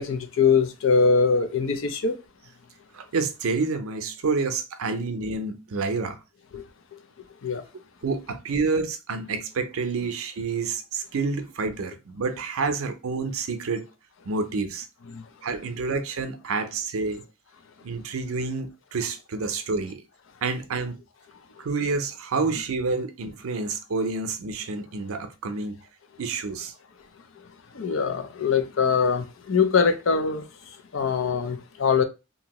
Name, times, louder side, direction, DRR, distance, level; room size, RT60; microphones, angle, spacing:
voice 1, 0.0-2.1 6.5-6.6 7.4-7.6 15.1-15.2 27.8-30.4 30.9-32.0, left 5 dB, 65° left, 0.5 m, -22 dB
voice 2, 2.9-6.2 8.0-13.9 14.3-14.9 15.4-17.2 17.8-20.0 20.4-21.0 21.6-25.8 26.2-26.7, right 4 dB, 90° right, 0.5 m, -28 dB
2.8 x 2.6 x 2.9 m
head